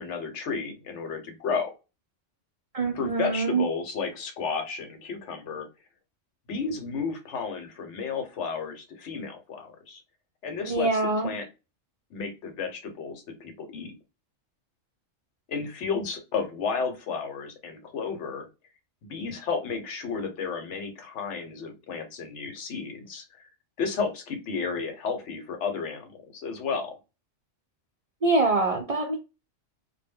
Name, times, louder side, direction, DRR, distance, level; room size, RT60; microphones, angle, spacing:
voice 1, 0.0-1.7 2.9-5.7 6.5-10.0 10.4-11.5 12.1-14.0 15.5-18.5 19.1-23.5 23.8-27.0, left 5 dB, 70° left, 6 dB, 1.0 m, -32 dB
voice 2, 2.7-3.6 10.7-11.3 28.2-29.2, right 3 dB, 70° right, 2 dB, 0.3 m, -24 dB
2.2 x 2.1 x 3.3 m, 0.28 s
omnidirectional pair, 1.3 m